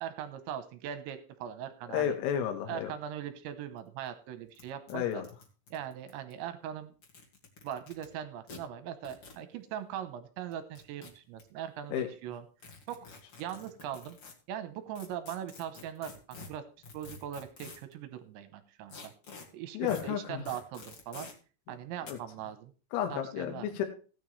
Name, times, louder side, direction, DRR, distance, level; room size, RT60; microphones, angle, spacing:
voice 1, 0.0-2.2 2.7-5.2 5.7-6.9 7.6-12.4 12.9-13.0 13.4-14.2 14.5-16.6 16.9-19.1 19.5-19.8 20.0-21.3 21.7-22.7 23.1-23.8, right 10 dB, 75° right, 10 dB, 2.9 m, -40 dB
voice 2, 1.9-2.9 4.9-5.2 11.9-12.1 19.7-20.5 22.0-22.2 22.9-23.9, left 9 dB, 85° left, 5 dB, 4.2 m, -32 dB
sound 1, 3.8-3.9 4.1-4.2 4.5-4.6 4.9-6.3 6.9-8.1 8.5-8.6 9.0-9.4 10.5-11.4 12.6-14.3 14.9-17.9 18.9-19.4 19.9-20.0 20.4-21.3 22.0-22.1, left 4 dB, 55° left, 1.6 m, -48 dB
16.5 x 9.3 x 3.2 m, 0.37 s
omnidirectional pair, 5.9 m